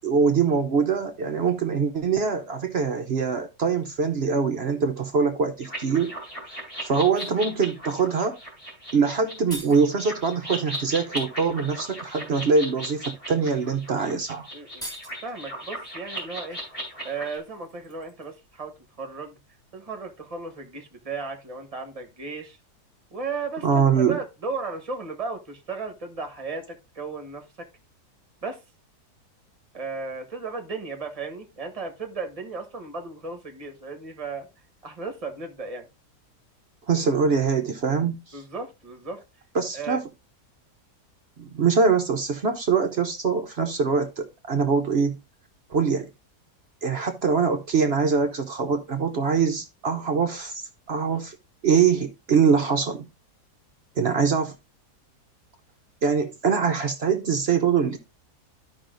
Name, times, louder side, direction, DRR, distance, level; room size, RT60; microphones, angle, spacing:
voice 1, 0.0-6.1 6.8-8.3 8.9-14.5 23.6-24.2 36.9-38.4 39.5-40.1 41.4-45.2 45.7-46.1 46.8-51.3 51.6-53.1 54.0-54.5 56.0-58.0, right 5 dB, 55° right, 0.8 m, -23 dB
sound 1, 5.6-17.4, right 1 dB, 20° left, 4.1 m, -37 dB
sound 2, 7.0-7.4 8.9-9.0 9.2-9.9 11.3-11.4 12.0-12.3 13.1-13.2 13.6-13.8 14.0-14.1 14.6-15.4 16.5-18.5 18.8-18.9, right 1 dB, ahead, 1.8 m, -44 dB
voice 2, 14.5-14.8 15.2-16.6 17.0-19.4 19.7-22.6 23.1-27.7 28.4-28.6 29.7-34.5 34.8-35.9 38.3-39.2 39.7-40.0 51.1-51.2, right 4 dB, 25° right, 1.3 m, -35 dB
13.5 x 5.4 x 2.5 m
omnidirectional pair, 1.7 m